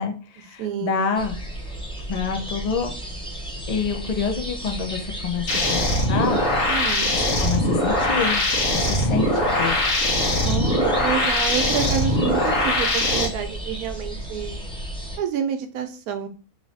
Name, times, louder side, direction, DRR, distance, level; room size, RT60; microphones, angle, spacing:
voice 1, 0.0-1.4 2.1-2.9 3.7-5.8 6.1-6.4 7.2-8.4 8.7-9.8, left 6 dB, 70° left, 5 dB, 0.3 m, -27 dB
voice 2, 0.6-1.0 6.7-7.1 10.4-14.6 15.2-16.3, right 8 dB, 75° right, 7 dB, 1.1 m, -28 dB
sound 1, 1.2-15.2, right 1 dB, 5° left, 0.6 m, -33 dB
sound 2, 5.5-13.3, left 1 dB, 50° left, 1.4 m, -21 dB
3.2 x 3.0 x 4.0 m, 0.36 s
omnidirectional pair, 1.6 m